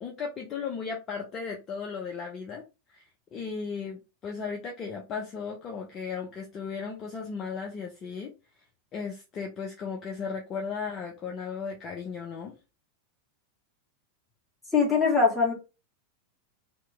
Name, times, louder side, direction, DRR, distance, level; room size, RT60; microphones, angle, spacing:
voice 1, 0.0-2.6 2.9-8.3 8.9-12.6, left 5 dB, 30° left, 0.6 m, -36 dB
voice 2, 14.7-15.5, left 5 dB, 10° left, 1.4 m, -22 dB
2.9 x 2.1 x 3.5 m
figure-of-eight pair, 85°, 0 cm